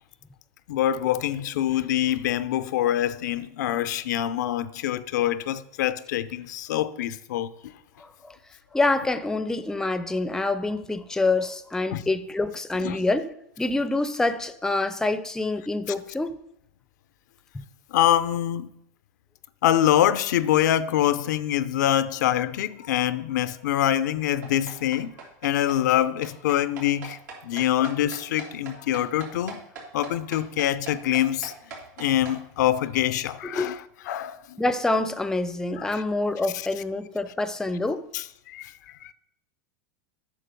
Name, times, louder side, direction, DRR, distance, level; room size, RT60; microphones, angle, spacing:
voice 1, 0.7-7.5 11.9-12.0 12.8-13.0 17.9-18.7 19.6-25.1 25.4-29.6 29.9-31.5 32.0-33.8 34.1-34.6 35.8-36.0 38.1-39.1, left 12 dB, 75° left, 0.5 m, -25 dB
voice 2, 8.0-8.4 8.7-13.3 13.6-16.4 17.5-17.6 33.4-33.8 34.6-38.0, left 2 dB, 5° left, 0.5 m, -26 dB
sound 1, 24.4-32.4, right 4 dB, 85° right, 3.0 m, -40 dB
8.4 x 6.1 x 5.3 m
hypercardioid pair, 115°, 10 cm